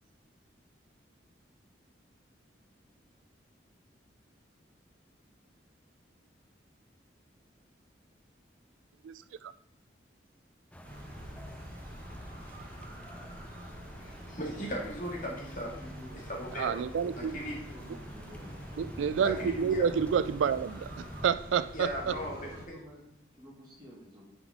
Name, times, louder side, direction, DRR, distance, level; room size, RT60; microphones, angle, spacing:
sound 1, 10.7-21.3, left 1 dB, 5° left, 0.4 m, -49 dB
sound 2, 10.8-22.6, right 1 dB, 50° right, 1.6 m, -46 dB
voice 1, 14.0-15.8 16.1-16.8 17.2-17.5 19.2-19.9 21.7-22.5, equal, 45° left, -2 dB, 2.0 m, -37 dB
voice 2, 15.6-16.3 17.0-18.6 19.1-19.6 22.0-23.1 23.4-24.2, equal, 20° right, -3 dB, 2.0 m, -50 dB
voice 3, 16.6-17.3 18.8-22.1, right 7 dB, 85° right, 15 dB, 0.3 m, -29 dB
9.4 x 5.3 x 3.6 m, 0.78 s
head